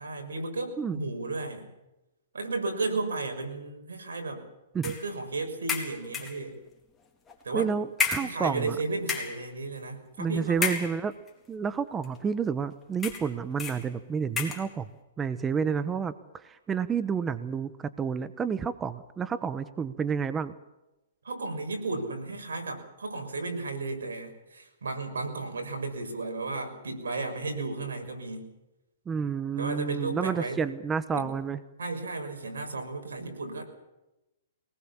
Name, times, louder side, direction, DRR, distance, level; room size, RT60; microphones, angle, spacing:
voice 1, 0.0-1.7 2.3-4.4 4.8-6.6 7.4-7.7 8.2-10.8 21.2-28.5 29.6-30.6 31.1-31.3 31.8-33.6, right 3 dB, 90° right, 5 dB, 6.2 m, -34 dB
sound 1, 4.8-5.1 5.7-6.4 7.3-7.4 8.0-8.7 9.0-9.5 10.6-11.3 12.0-12.2 13.0-13.3 13.6-13.8 14.4-14.7, left 5 dB, 15° left, 4.1 m, -31 dB
voice 2, 7.5-8.8 10.2-11.1 11.5-14.9 15.2-20.5 29.1-31.6, right 6 dB, 15° right, 13 dB, 1.0 m, -30 dB
23.5 x 19.5 x 7.3 m, 0.97 s
hypercardioid pair, 140°, 0 cm